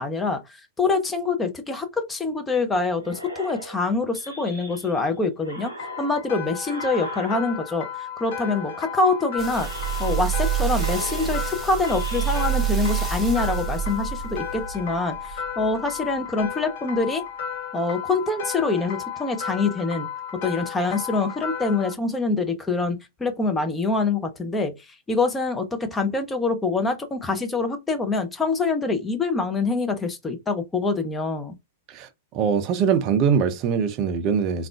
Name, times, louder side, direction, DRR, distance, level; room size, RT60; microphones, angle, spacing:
voice 1, 0.0-9.7 10.0-17.2 17.7-20.1 20.4-24.7 25.1-31.5, left 3 dB, 15° left, 0.6 m, -25 dB
sound 1, 3.0-5.1 5.4-7.8 8.2-9.1 9.5-10.5 10.7-12.5, right 1 dB, 85° left, 1.0 m, -40 dB
sound 2, 5.8-21.9, left 8 dB, 55° left, 0.6 m, -34 dB
sound 3, 9.4-15.9 16.4-16.5, right 10 dB, 15° right, 1.3 m, -27 dB
voice 2, 31.9-34.7, right 6 dB, 40° right, 0.5 m, -23 dB
3.5 x 2.3 x 2.3 m
figure-of-eight pair, 100°, 0 cm